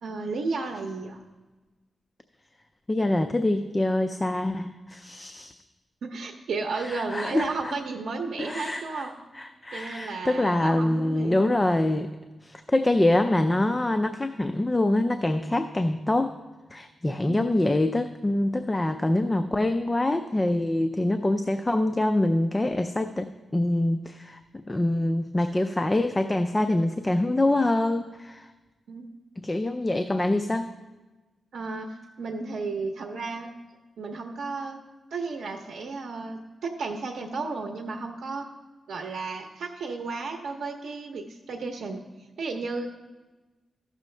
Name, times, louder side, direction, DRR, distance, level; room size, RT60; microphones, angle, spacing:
voice 1, 0.0-1.2 6.0-9.1 9.7-11.4 17.3-17.6 28.9-29.1 31.5-33.5 34.0-34.8 35.1-38.5 38.9-42.0 42.4-42.9, right 4 dB, 85° right, 2 dB, 0.7 m, -33 dB
voice 2, 2.9-5.5 6.7-7.7 8.4-9.1 9.3-12.1 12.4-16.3 16.7-24.4 24.7-28.5 29.4-30.7, left 1 dB, 15° left, 8 dB, 0.3 m, -25 dB
14.5 x 6.3 x 3.2 m, 1.2 s
wide cardioid pair, 125°, 0 cm